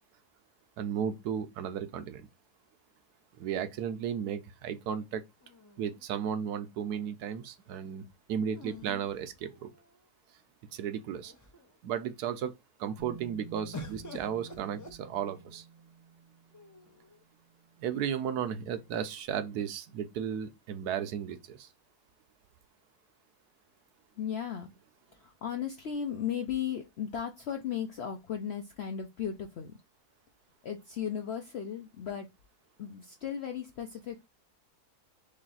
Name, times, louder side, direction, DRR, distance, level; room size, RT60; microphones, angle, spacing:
voice 1, 0.8-2.3 3.4-5.2 5.8-9.7 10.7-11.3 11.8-15.6 17.8-21.7, right 8 dB, 80° right, 1.1 m, -34 dB
sound 1, 5.4-6.5 8.5-10.0 10.8-10.9 11.2-11.8 13.7-15.6 16.5-17.2, left 2 dB, 25° left, 0.4 m, -48 dB
Bass guitar, 13.0-19.0, right 6 dB, 45° right, 0.5 m, -52 dB
voice 2, 24.2-24.8 25.1-29.8 30.6-32.3 32.8-34.3, left 8 dB, 70° left, 0.6 m, -36 dB
3.4 x 3.2 x 3.8 m
omnidirectional pair, 1.7 m